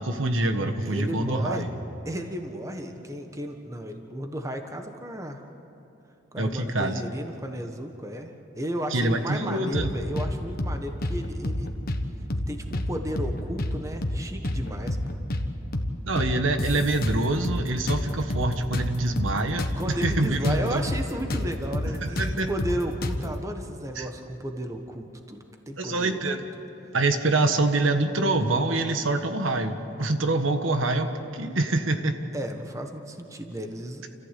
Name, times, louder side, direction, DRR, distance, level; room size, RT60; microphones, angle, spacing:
voice 1, 0.0-1.7 6.4-7.0 8.9-9.9 16.0-20.8 22.0-22.5 23.9-24.1 25.8-26.4 26.9-32.2, right 2 dB, 85° right, 7 dB, 1.4 m, -25 dB
voice 2, 0.8-1.6 2.0-5.4 6.3-11.7 12.5-15.0 19.8-25.4 25.7-26.2 32.3-34.1, right 1 dB, 15° right, 4 dB, 1.3 m, -34 dB
sound 1, 9.7-10.3 10.6-10.8 11.0-12.0 12.3-12.5 12.7-13.8 14.0-14.2 14.4-15.5 15.7-15.9 16.2-17.6 17.9-20.6 20.9-21.0 21.3-23.3, left 1 dB, 50° left, 1.3 m, -28 dB
30.0 x 14.5 x 8.4 m, 2.8 s
head